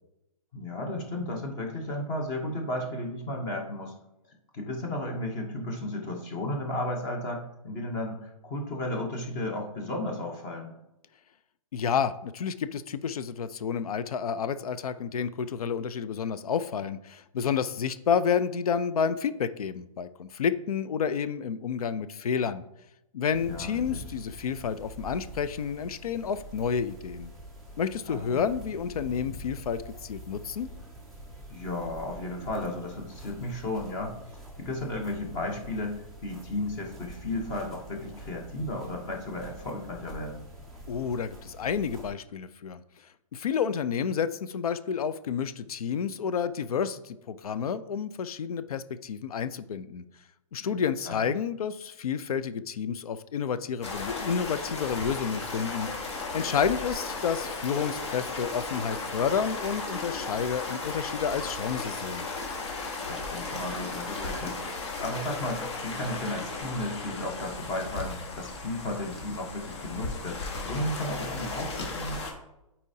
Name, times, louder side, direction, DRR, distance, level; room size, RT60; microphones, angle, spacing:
voice 1, 0.5-3.9 4.5-10.8 23.4-24.0 28.1-28.4 31.5-34.2 34.6-40.4 50.6-50.8 51.0-51.3 63.1-72.2, left 1 dB, 15° left, 2 dB, 0.8 m, -34 dB
voice 2, 11.7-22.6 23.1-27.3 27.8-30.7 40.9-42.8 43.3-50.0 50.5-62.3, left 7 dB, 90° left, 13 dB, 0.5 m, -30 dB
sound 1, 23.3-42.1, right 1 dB, ahead, 0.4 m, -45 dB
sound 2, 53.8-72.3, left 3 dB, 50° left, 1.4 m, -35 dB
8.3 x 4.3 x 2.7 m, 0.90 s
hypercardioid pair, 170°, 18 cm